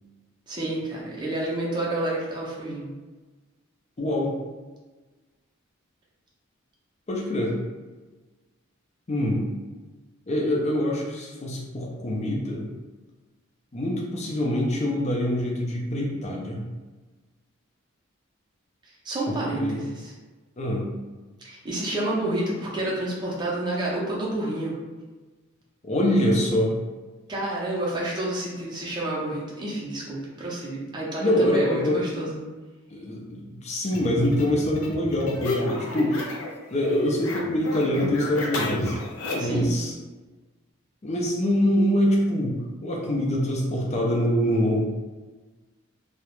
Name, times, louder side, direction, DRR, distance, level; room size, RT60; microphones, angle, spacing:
voice 1, 0.5-2.9 19.0-20.1 21.4-24.7 27.3-32.4 39.4-39.7, right 1 dB, 20° right, -5 dB, 0.5 m, -29 dB
voice 2, 4.0-4.3 7.1-7.6 9.1-9.5 10.3-12.7 13.7-16.6 19.3-19.8 20.6-20.9 25.8-26.7 31.2-32.0 32.9-36.2 36.7-39.0 39.3-39.9 41.0-42.5 42.8-44.8, left 1 dB, 35° left, -2 dB, 0.4 m, -24 dB
sound 1, 33.9-36.6 36.8-39.6, left 2 dB, 80° left, 0.5 m, -32 dB
2.3 x 2.0 x 3.0 m, 1.3 s
head